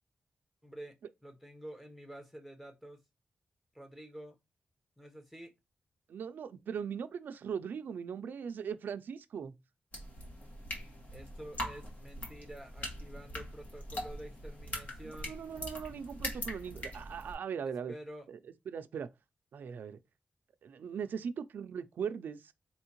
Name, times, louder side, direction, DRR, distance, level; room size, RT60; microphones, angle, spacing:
voice 1, 0.6-3.0 3.7-4.4 5.0-5.5 11.1-15.4 17.6-18.3, right 1 dB, 5° left, 0.9 m, -49 dB
voice 2, 6.1-9.6 15.2-17.9 18.3-18.4 18.7-19.1 19.5-20.0 20.6-22.5, right 7 dB, 85° right, 0.4 m, -39 dB
sound 1, 9.9-17.3, left 1 dB, 50° left, 1.4 m, -42 dB
4.3 x 3.5 x 2.9 m
wide cardioid pair, 135°, 3 cm